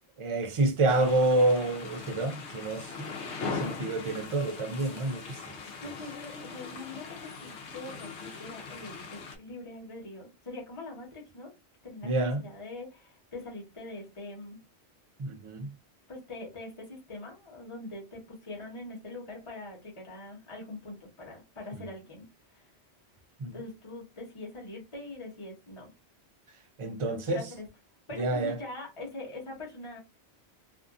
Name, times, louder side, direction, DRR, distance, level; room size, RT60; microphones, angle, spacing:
voice 1, 0.2-3.1 3.4-5.4 12.0-12.4 15.2-15.7 23.4-23.5 26.8-27.4 28.2-28.6, right 2 dB, 55° right, 0.3 m, -28 dB
sound 1, 0.9-9.4, left 4 dB, 85° left, 1.0 m, -40 dB
voice 2, 5.8-11.5 11.8-12.1 12.4-14.6 16.1-22.2 22.5-22.7 23.5-25.9 27.0-27.7 28.1-30.0, left 2 dB, 30° left, 1.1 m, -43 dB
2.6 x 2.4 x 2.4 m
omnidirectional pair, 1.1 m